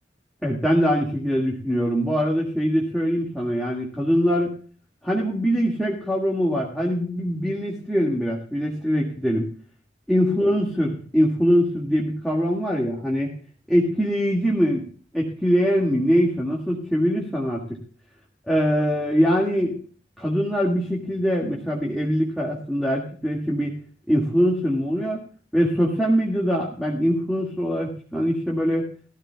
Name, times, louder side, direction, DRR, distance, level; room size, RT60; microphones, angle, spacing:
voice 1, 0.4-4.5 5.0-9.5 10.1-13.3 13.7-14.9 15.1-17.8 18.5-19.8 20.2-23.8 24.1-25.2 25.5-28.8, equal, ahead, -4 dB, 1.8 m, -22 dB
18.5 x 13.5 x 2.2 m, 0.42 s
head